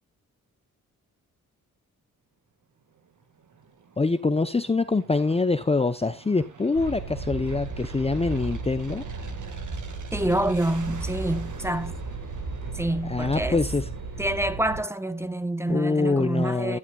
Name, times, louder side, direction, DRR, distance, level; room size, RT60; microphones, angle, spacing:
Aircraft, 2.8-15.5, right 5 dB, 55° right, 1.9 m, -47 dB
voice 1, 4.0-9.0 13.0-13.9 15.7-16.8, left 3 dB, 15° left, 0.7 m, -25 dB
sound 1, 6.7-14.8, right 3 dB, 70° right, 3.9 m, -35 dB
voice 2, 10.1-12.0 12.7-13.6 14.2-16.8, right 1 dB, 5° right, 1.0 m, -27 dB
12.0 x 9.7 x 2.4 m
cardioid pair, 60°, 35 cm